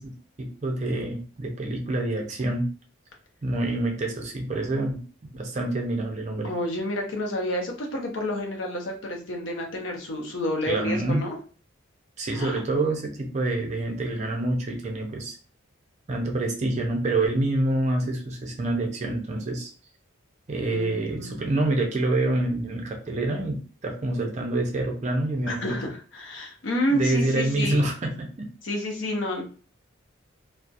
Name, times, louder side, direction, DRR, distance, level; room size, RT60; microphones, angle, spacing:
voice 1, 0.4-2.7 3.4-5.0 5.3-6.5 10.7-11.2 12.2-15.4 16.1-19.7 20.5-25.8 26.9-28.5, right 2 dB, 35° right, 3 dB, 0.4 m, -27 dB
voice 2, 6.4-11.4 12.3-12.6 20.7-21.4 25.5-27.8 28.6-29.4, left 1 dB, 70° left, 1 dB, 0.6 m, -29 dB
2.3 x 2.0 x 2.6 m, 0.38 s
head